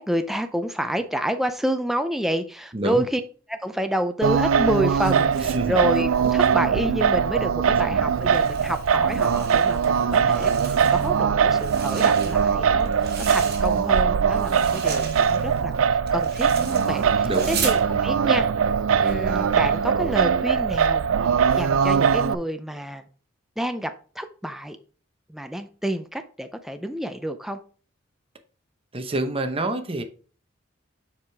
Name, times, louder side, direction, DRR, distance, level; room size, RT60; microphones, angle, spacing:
voice 1, 0.0-3.2 3.5-18.5 19.0-21.1 21.5-23.1 23.6-24.8 25.3-27.6, equal, ahead, 0.4 m, -29 dB
voice 2, 2.7-3.1 5.5-5.8 17.2-17.6 28.9-30.0, right 1 dB, 30° right, 0.8 m, -27 dB
Singing, 4.2-22.3, right 6 dB, 80° right, 0.4 m, -21 dB
sound 1, 8.2-9.9 10.2-11.2 11.5-14.0 14.3-17.8, right 6 dB, 55° right, 1.6 m, -36 dB
7.2 x 4.8 x 3.4 m
head